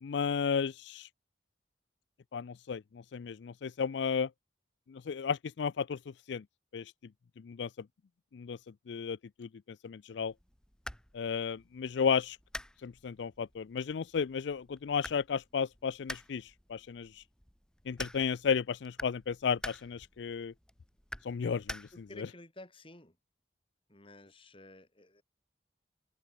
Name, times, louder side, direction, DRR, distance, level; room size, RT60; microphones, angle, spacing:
voice 1, 0.0-1.1 2.3-4.3 4.9-6.0 6.3-6.4 6.7-6.9 7.4-7.7 8.3-8.6 8.9-9.5 9.8-10.3 11.1-12.4 12.8-17.2 17.9-20.5 21.2-22.3, left 6 dB, 70° left, 0.4 m, -33 dB
sound 1, 10.3-22.3, left 1 dB, 5° left, 1.5 m, -48 dB
voice 2, 21.9-23.2 23.9-25.2, left 1 dB, 30° left, 5.7 m, -52 dB
head